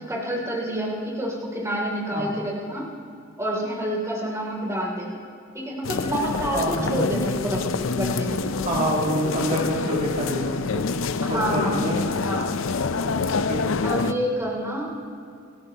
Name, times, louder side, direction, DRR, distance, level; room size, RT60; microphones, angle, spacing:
voice 1, 0.0-2.9 3.4-5.2 5.5-8.7 11.2-11.9 12.2-12.5 13.8-14.9, equal, 15° right, -3 dB, 2.9 m, -28 dB
sound 1, 5.8-14.1, left 4 dB, 70° left, 0.6 m, -26 dB
voice 2, 6.5-7.1 8.6-10.8 11.2-12.0 13.0-13.7, equal, 40° right, -4 dB, 2.5 m, -27 dB
28.5 x 13.0 x 2.9 m, 2.4 s
head